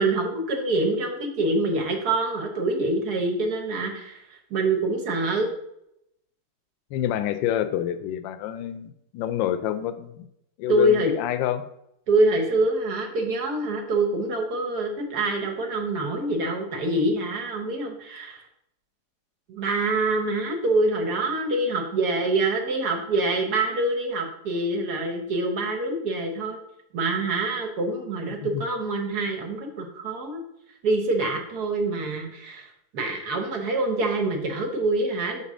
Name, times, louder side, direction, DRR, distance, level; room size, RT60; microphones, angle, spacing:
voice 1, 0.0-4.2 4.5-5.5 10.7-11.1 12.1-18.4 19.5-26.6 26.9-30.4 30.8-32.7 32.9-35.4, right 2 dB, 60° right, 3 dB, 1.5 m, -25 dB
voice 2, 6.9-10.2 10.6-11.7 28.5-28.6, left 11 dB, 80° left, 10 dB, 1.3 m, -27 dB
5.9 x 4.1 x 6.2 m, 0.79 s
omnidirectional pair, 2.1 m